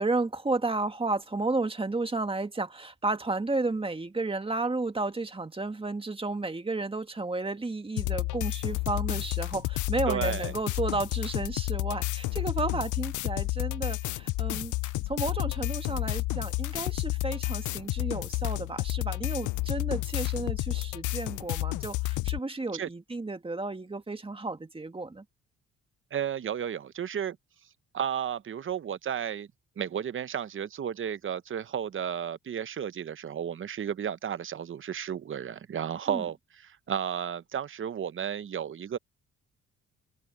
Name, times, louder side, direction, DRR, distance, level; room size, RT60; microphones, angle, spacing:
voice 1, 0.0-25.2 36.1-36.2, right 3 dB, 20° right, 2.0 m, -32 dB
sound 1, 8.0-22.4, left 19 dB, 75° left, 0.5 m, -31 dB
voice 2, 10.1-10.5 22.7-22.9 26.1-27.4 27.9-29.5 29.8-36.4 36.6-39.0, right 8 dB, 45° right, 0.9 m, -33 dB
cardioid pair, 90°, 30 cm